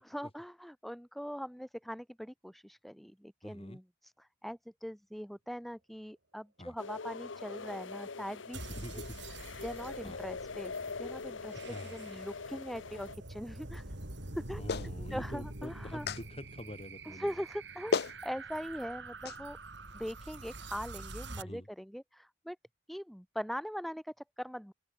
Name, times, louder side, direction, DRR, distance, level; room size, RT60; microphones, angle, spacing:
voice 1, 0.1-8.7 8.9-9.0 9.3-10.7 11.0-13.9 14.3-14.6 15.1-16.1 17.0-18.0 18.2-19.6 19.9-22.6 22.9-24.7, equal, ahead, 2.9 m, -41 dB
voice 2, 3.4-3.8 6.6-6.7 8.7-9.2 10.0-10.2 11.5-12.0 14.6-17.3 21.4-21.7, left 1 dB, 30° left, 4.5 m, -45 dB
sound 1, 6.8-13.2, left 4 dB, 85° left, 1.0 m, -43 dB
sound 2, 8.5-21.4, right 2 dB, 65° right, 4.3 m, -46 dB
Clapping, 14.7-14.9 16.1-16.2 17.5-17.6 17.9-18.2 19.2-19.4, left 4 dB, 60° left, 0.6 m, -32 dB
open air
head